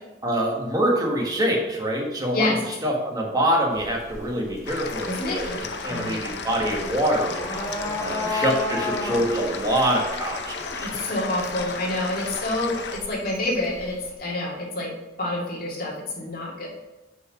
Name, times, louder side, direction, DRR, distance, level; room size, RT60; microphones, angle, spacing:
voice 1, 0.2-2.5 2.8-5.5 5.8-7.3 8.0-10.9, right 1 dB, 20° right, -1 dB, 1.4 m, -25 dB
sound 1, 3.7-14.1, left 2 dB, 15° left, 1.4 m, -35 dB
sound 2, 4.7-13.0, left 5 dB, 80° left, 0.7 m, -34 dB
voice 2, 5.0-5.6 5.8-6.3 7.5-8.0 10.8-14.9 15.2-16.7, left 1 dB, 55° left, -4 dB, 2.1 m, -28 dB
5.8 x 4.6 x 5.8 m, 1.1 s
head